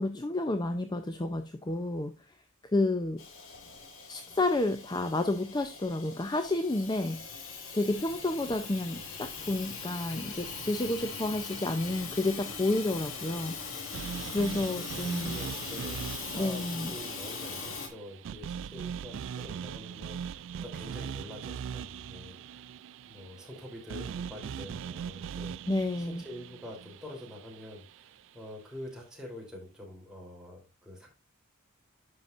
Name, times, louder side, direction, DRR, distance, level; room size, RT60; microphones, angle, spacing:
voice 1, 0.0-2.3 2.7-3.2 4.1-7.2 7.7-13.6 14.3-15.4 16.4-16.9 25.7-26.2, left 2 dB, 20° left, 0.5 m, -30 dB
Hiss / Toilet flush / Trickle dribble, 3.2-17.9, left 5 dB, 70° left, 2.0 m, -41 dB
sound 1, 13.9-28.1, right 7 dB, 65° right, 0.3 m, -41 dB
voice 2, 14.5-22.7 23.0-31.1, left 1 dB, 5° right, 3.2 m, -46 dB
11.0 x 5.8 x 2.5 m
head